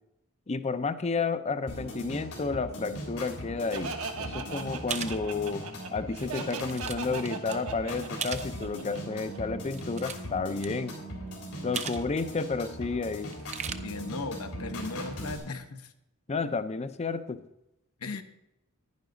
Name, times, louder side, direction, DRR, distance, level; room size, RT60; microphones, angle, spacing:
voice 1, 0.5-11.0 11.6-13.3 16.3-17.4, left 4 dB, 30° left, 12 dB, 0.5 m, -31 dB
sound 1, 1.7-15.4, equal, 90° left, 3.9 m, -40 dB
Laughter, 3.7-9.4, right 5 dB, 70° right, 1.2 m, -38 dB
sound 2, 4.9-5.2 5.8-5.9 6.4-7.0 7.2-7.5 8.2-8.5 9.6-10.4 10.6-10.7 11.8-12.0 12.3-12.4 13.3-13.7, right 7 dB, 30° right, 0.5 m, -36 dB
voice 2, 13.8-15.9 18.0-18.2, left 3 dB, 75° left, 8 dB, 0.8 m, -37 dB
10.5 x 10.5 x 3.9 m, 0.87 s
head